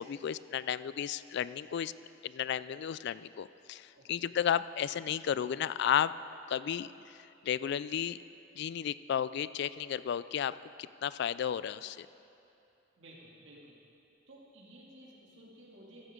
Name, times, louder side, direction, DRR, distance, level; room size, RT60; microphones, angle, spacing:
voice 1, 0.0-1.9 2.2-6.1 6.5-6.9 7.4-8.2 8.6-12.1, left 9 dB, 60° left, 16 dB, 0.3 m, -33 dB
voice 2, 4.0-4.3 13.0-13.8 14.3-16.1, right 1 dB, 70° right, -3 dB, 2.4 m, -55 dB
15.0 x 13.0 x 3.7 m, 2.8 s
head